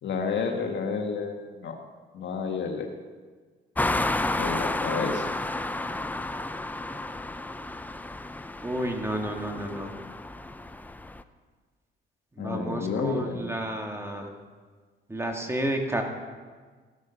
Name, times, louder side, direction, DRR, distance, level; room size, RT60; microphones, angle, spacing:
voice 1, 0.0-1.8 2.1-2.9 4.4-5.3 12.4-13.5, left 5 dB, 65° left, 4 dB, 1.6 m, -30 dB
sound 1, 3.8-11.2, left 2 dB, 10° left, 0.5 m, -31 dB
voice 2, 8.6-9.9 12.4-14.3 15.1-16.0, right 1 dB, 15° right, 2 dB, 1.8 m, -31 dB
15.5 x 8.2 x 5.7 m, 1.5 s
cardioid pair, 90°, 20 cm